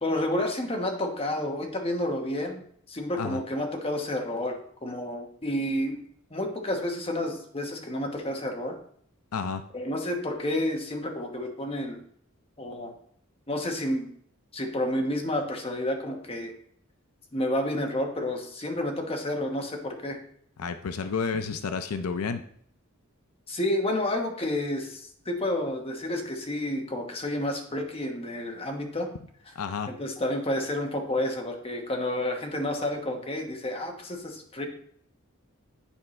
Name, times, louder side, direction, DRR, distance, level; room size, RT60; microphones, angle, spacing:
voice 1, 0.0-2.6 2.9-6.0 6.3-8.7 9.7-12.0 12.6-12.9 13.5-14.1 14.5-16.5 17.3-20.2 23.5-29.1 29.9-34.7, left 1 dB, 25° left, 3 dB, 1.1 m, -30 dB
voice 2, 9.3-9.6 20.6-22.4 29.6-29.9, left 5 dB, 90° left, 9 dB, 0.5 m, -30 dB
10.0 x 4.5 x 3.2 m, 0.64 s
head